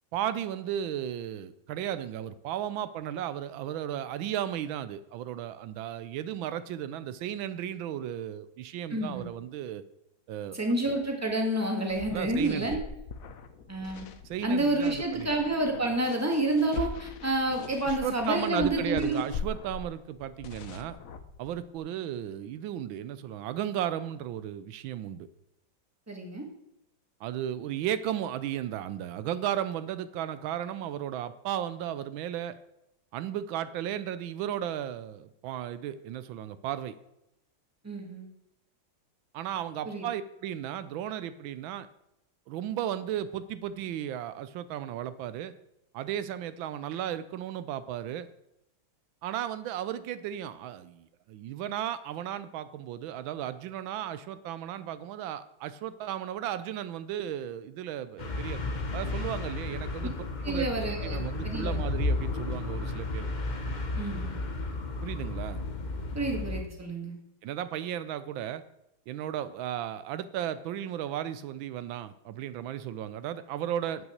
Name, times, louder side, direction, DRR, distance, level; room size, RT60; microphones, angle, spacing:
voice 1, 0.1-9.8 10.3-10.6 12.1-12.8 14.2-15.3 17.8-21.0 21.4-25.3 27.2-32.6 33.1-36.9 39.3-41.9 42.5-45.5 45.9-48.3 49.2-58.6 58.9-60.1 60.5-60.6 61.0-63.3 65.0-65.6 67.4-68.6 69.1-74.1, right 11 dB, 80° right, 14 dB, 1.4 m, -35 dB
voice 2, 8.9-9.3 10.5-12.8 13.7-14.1 14.4-19.2 26.1-26.4 37.8-38.3 39.8-40.1 60.4-61.8 63.9-64.4 66.1-67.1, right 2 dB, 10° right, 2 dB, 1.7 m, -29 dB
sound 1, 11.9-21.8, left 5 dB, 55° left, 1.0 m, -41 dB
sound 2, 58.2-66.6, left 2 dB, 85° left, 0.4 m, -33 dB
9.4 x 5.9 x 7.8 m, 0.85 s
omnidirectional pair, 2.1 m